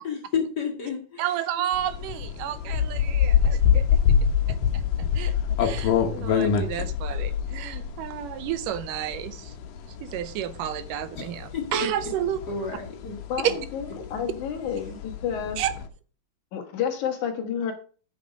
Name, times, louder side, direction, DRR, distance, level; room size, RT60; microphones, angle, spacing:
voice 1, 0.0-1.2 11.2-11.3 11.5-11.9 12.5-13.2, left 5 dB, 35° left, 1 dB, 2.0 m, -30 dB
voice 2, 1.2-4.0 4.5-5.3 5.6-9.5 10.0-12.4 13.4-13.6 15.6-15.7, right 11 dB, 80° right, 13 dB, 2.3 m, -31 dB
sound 1, 1.7-15.9, left 8 dB, 85° left, 2.7 m, -25 dB
voice 3, 13.3-15.6 16.5-17.7, left 8 dB, 65° left, 5 dB, 2.8 m, -30 dB
8.3 x 8.3 x 5.1 m, 0.39 s
omnidirectional pair, 3.8 m